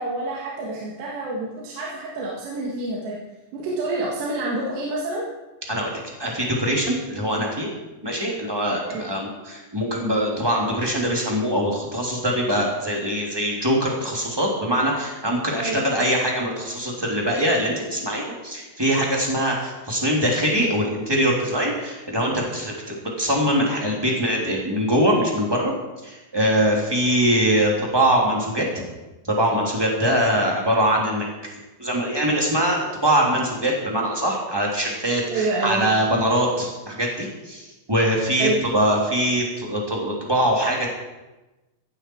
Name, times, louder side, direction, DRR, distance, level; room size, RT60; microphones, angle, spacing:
voice 1, 0.0-3.2 3.5-5.3 8.9-9.1 15.6-15.8 30.6-30.7 35.3-35.9 38.3-38.6, right 2 dB, 75° right, -4 dB, 4.2 m, -28 dB
voice 2, 6.2-7.7 8.0-25.7 26.0-28.6 29.2-31.3 31.8-40.9, equal, 5° right, -2 dB, 2.4 m, -22 dB
15.0 x 15.0 x 4.7 m, 1.1 s
omnidirectional pair, 4.9 m